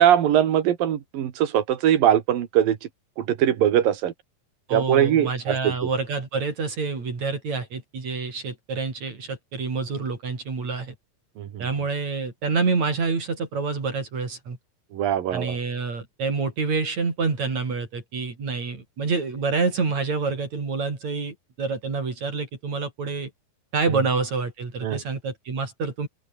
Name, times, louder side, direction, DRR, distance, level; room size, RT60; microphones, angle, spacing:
voice 1, 0.0-2.8 3.2-4.1 4.7-5.7 11.4-11.7 14.9-15.6 24.8-25.0, right 10 dB, 75° right, 3.6 m, -21 dB
voice 2, 4.7-10.9 11.6-14.6 15.3-23.3 23.7-26.1, right 4 dB, 50° right, 5.9 m, -27 dB
open air
omnidirectional pair, 4.1 m